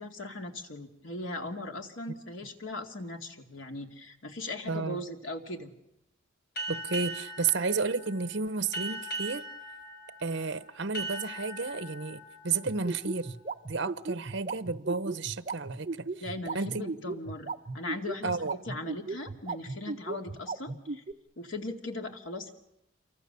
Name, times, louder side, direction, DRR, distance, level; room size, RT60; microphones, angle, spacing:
voice 1, 0.0-5.7 16.2-17.5 17.7-21.0 21.4-22.5, left 2 dB, 80° left, 2.5 m, -39 dB
voice 2, 4.6-5.0 6.7-9.4 10.2-13.3 13.7-16.1 16.5-16.9 18.2-18.5, right 4 dB, 60° right, 1.0 m, -32 dB
sound 1, 6.6-13.8, right 2 dB, 55° left, 6.4 m, -40 dB
sound 2, 12.6-21.1, right 3 dB, 35° right, 0.9 m, -35 dB
27.5 x 24.0 x 6.9 m
head